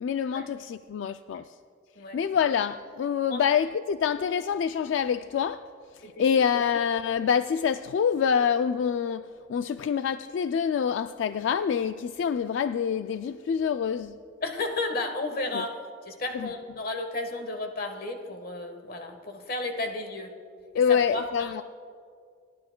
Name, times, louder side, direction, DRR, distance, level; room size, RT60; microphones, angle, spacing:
voice 1, 0.0-1.5 2.1-5.6 5.9-14.2 15.5-15.6 16.3-16.5 20.7-21.6, left 7 dB, 85° left, 0.3 m, -26 dB
voice 2, 14.4-15.8 16.0-20.3 20.9-21.6, left 2 dB, 55° left, 1.3 m, -33 dB
29.0 x 12.0 x 2.2 m
head